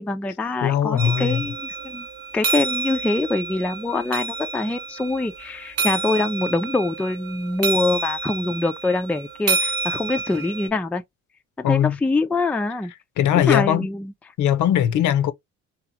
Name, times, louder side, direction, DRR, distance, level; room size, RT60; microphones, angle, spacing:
voice 1, 0.0-2.1 2.3-11.0 11.6-12.9 13.5-14.1, left 2 dB, 5° left, 0.3 m, -24 dB
voice 2, 0.6-1.4 11.6-12.0 13.2-13.9 14.4-15.3, left 10 dB, 55° left, 0.6 m, -20 dB
sound 1, 1.0-10.7, right 3 dB, 40° right, 0.7 m, -28 dB
2.9 x 2.4 x 2.2 m
supercardioid pair, 65°, 35 cm